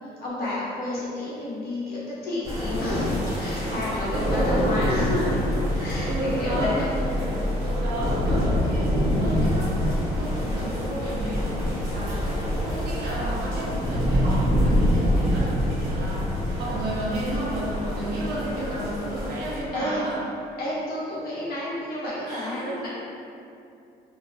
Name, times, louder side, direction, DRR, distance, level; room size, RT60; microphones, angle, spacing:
voice 1, 0.0-5.5 5.8-6.9 19.7-20.1 20.6-22.9, left 1 dB, 65° left, -8 dB, 0.9 m, -30 dB
sound 1, 2.4-19.6, equal, 20° right, 1.0 m, -26 dB
voice 2, 4.1-4.8 6.0-20.2 22.3-22.8, right 1 dB, 70° right, -6 dB, 0.7 m, -32 dB
2.8 x 2.5 x 2.2 m, 2.6 s
cardioid pair, 110°, 17 cm